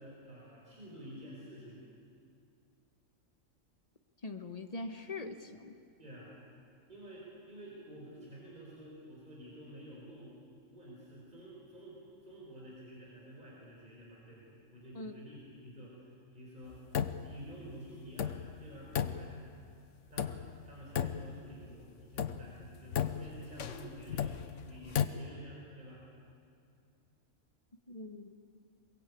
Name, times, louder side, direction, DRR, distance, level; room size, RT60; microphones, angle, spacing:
voice 1, 0.0-1.8 6.0-6.3 6.9-10.4 10.7-16.8 17.2-19.5 20.1-26.0, equal, 35° right, -4 dB, 5.1 m, -50 dB
voice 2, 4.2-5.8 14.9-15.1 27.9-28.3, left 2 dB, 30° left, 7 dB, 1.4 m, -42 dB
sound 1, 16.7-17.4 17.7-17.8 18.2-19.7 20.2-20.7 20.9-21.7 22.1-25.1, left 8 dB, 70° left, 1.2 m, -35 dB
22.5 x 22.5 x 8.6 m, 2.5 s
omnidirectional pair, 1.3 m